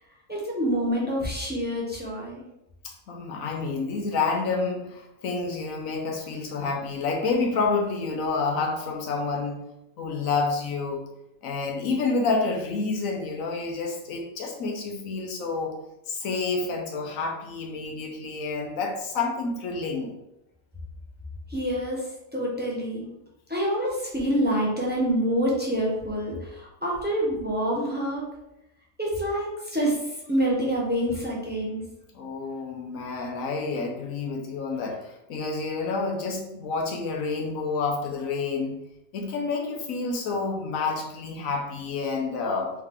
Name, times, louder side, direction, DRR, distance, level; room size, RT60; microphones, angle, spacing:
voice 1, 0.3-2.4 21.5-23.1 23.5-28.3 29.0-31.8, equal, 10° right, -4 dB, 0.8 m, -27 dB
voice 2, 2.8-9.6 10.0-11.0 11.4-15.7 16.1-20.1 32.1-38.8 39.1-42.7, left 4 dB, 85° left, 1 dB, 1.2 m, -29 dB
3.6 x 3.2 x 3.5 m, 0.88 s
omnidirectional pair, 1.4 m